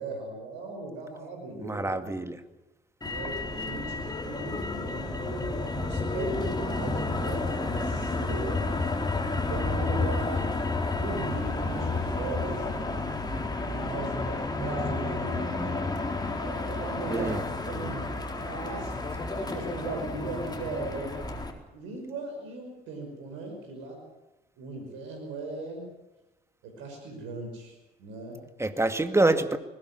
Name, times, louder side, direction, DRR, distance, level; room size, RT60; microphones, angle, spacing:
voice 1, 0.0-2.2 3.0-8.7 9.3-10.6 10.9-12.7 13.6-15.9 16.4-18.1 18.4-18.9 19.4-21.2 21.7-24.0 24.6-25.8 26.6-28.4, right 3 dB, 70° right, 3 dB, 5.7 m, -38 dB
voice 2, 1.6-2.4 17.1-17.4 28.6-29.6, right 2 dB, 15° right, 9 dB, 2.1 m, -26 dB
Motor vehicle (road), 3.0-21.5, left 3 dB, 20° left, 4.1 m, -31 dB
21.0 x 17.0 x 9.6 m, 1.0 s
hypercardioid pair, 50°, 20 cm